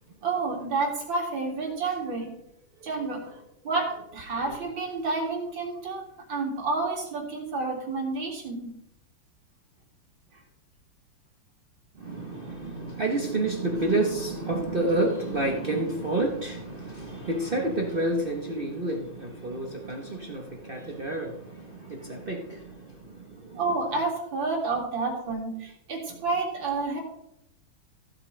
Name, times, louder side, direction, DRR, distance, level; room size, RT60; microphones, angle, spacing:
voice 1, 0.2-2.3 2.8-8.7 23.5-27.0, right 3 dB, 60° right, 0 dB, 3.1 m, -30 dB
voice 2, 12.0-23.6, right 2 dB, 35° right, 1 dB, 0.9 m, -29 dB
15.0 x 8.4 x 3.3 m, 0.81 s
omnidirectional pair, 2.4 m